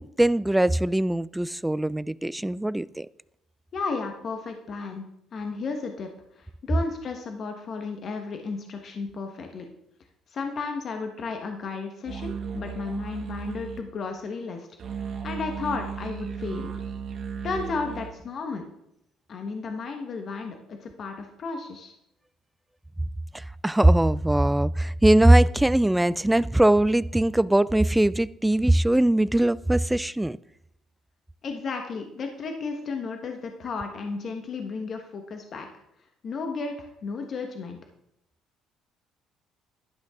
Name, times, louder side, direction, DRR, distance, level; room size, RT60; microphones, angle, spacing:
voice 1, 0.0-3.1 23.3-30.4, right 1 dB, 5° right, 0.3 m, -21 dB
voice 2, 3.7-9.7 10.3-14.7 14.9-16.7 17.4-18.6 19.3-21.9 31.4-35.8 36.2-37.8, left 4 dB, 50° left, 1.3 m, -33 dB
sound 1, 12.1-13.8 14.8-18.1, right 6 dB, 50° right, 1.9 m, -35 dB
12.0 x 11.5 x 3.7 m
cardioid pair, 95°, 0 cm